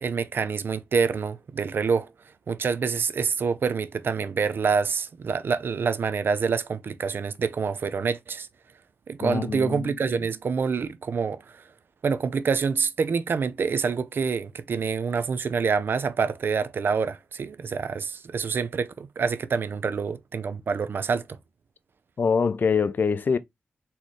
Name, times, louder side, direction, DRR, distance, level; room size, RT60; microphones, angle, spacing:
voice 1, 0.0-2.1 2.5-8.5 9.1-11.6 12.0-21.2, right 5 dB, 60° right, 0.5 m, -26 dB
voice 2, 9.2-9.9 22.2-23.4, left 5 dB, 50° left, 0.4 m, -24 dB
4.2 x 3.7 x 3.0 m
wide cardioid pair, 90°, 4 cm